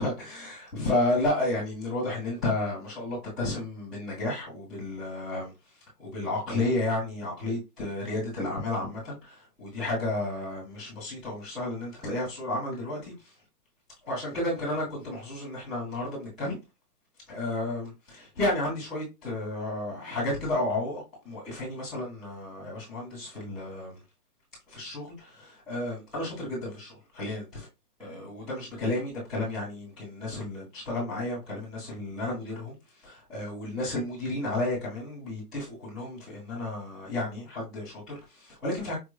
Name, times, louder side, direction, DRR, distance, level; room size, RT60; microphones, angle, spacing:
voice 1, 0.0-5.5 6.0-13.3 14.0-16.6 17.3-24.0 24.7-27.7 28.0-39.0, left 2 dB, ahead, 0.7 m, -32 dB
5.9 x 2.1 x 2.4 m
hypercardioid pair, 175°, 48 cm